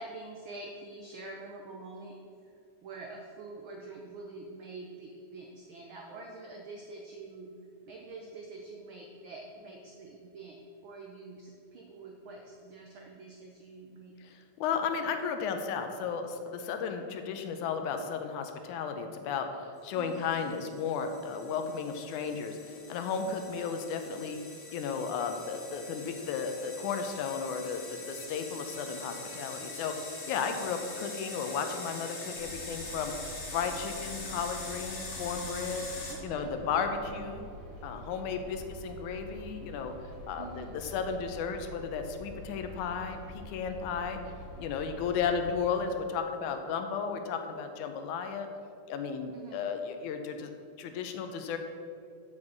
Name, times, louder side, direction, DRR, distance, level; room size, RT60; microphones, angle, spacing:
voice 1, 0.0-2.1 2.4-2.5 2.8-7.5 7.9-14.1 19.9-20.4 30.5-30.8 36.1-36.5 40.4-40.8 49.3-49.7, right 3 dB, 90° right, 0 dB, 1.1 m, -46 dB
voice 2, 14.2-24.4 24.7-33.1 33.5-35.9 36.2-37.5 37.8-39.9 40.3-44.2 44.6-48.5 48.9-50.5 50.8-51.6, left 6 dB, 85° left, 6 dB, 2.2 m, -34 dB
sound 1, 20.1-36.1, left 2 dB, 40° left, 1.4 m, -43 dB
sound 2, 32.3-45.7, equal, 20° right, 2.3 m, -46 dB
7.6 x 6.1 x 7.3 m, 2.4 s
omnidirectional pair, 3.4 m